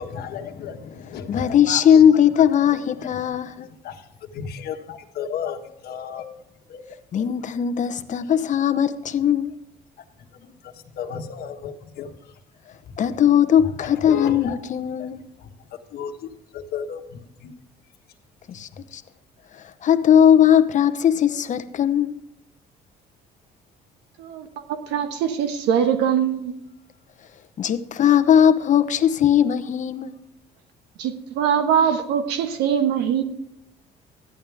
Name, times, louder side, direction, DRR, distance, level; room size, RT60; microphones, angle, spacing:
voice 1, 0.0-6.2 6.7-6.8 8.4-8.5 10.3-12.4 12.9-13.0 13.6-14.6 15.4-17.5, left 7 dB, 65° left, 1.4 m, -35 dB
voice 2, 1.3-3.7 7.1-9.6 13.0-15.2 18.5-19.0 19.8-22.2 27.6-30.2, left 9 dB, 45° left, 0.9 m, -19 dB
voice 3, 24.9-26.5 31.0-33.2, right 8 dB, 85° right, 1.4 m, -22 dB
14.0 x 10.5 x 3.5 m
cardioid pair, 110°, 17 cm